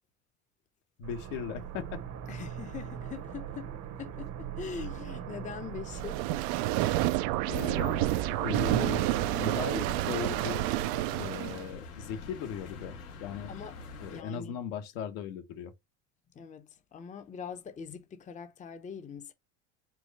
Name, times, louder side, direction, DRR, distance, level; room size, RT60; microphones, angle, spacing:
voice 1, 1.0-2.0 7.5-8.0 8.4-10.6 11.1-13.6 14.0-15.7, left 7 dB, 75° left, 1.2 m, -38 dB
sound 1, 1.0-9.7 10.0-10.1, right 9 dB, 45° right, 0.9 m, -42 dB
voice 2, 2.3-6.3 13.5-13.8 14.1-14.6 16.3-19.3, left 7 dB, 20° left, 0.7 m, -42 dB
sound 2, 5.9-11.7, right 15 dB, 65° right, 0.5 m, -29 dB
sound 3, 7.5-14.2, left 3 dB, 90° left, 2.1 m, -45 dB
4.5 x 2.5 x 4.1 m
supercardioid pair, 105°, 40 cm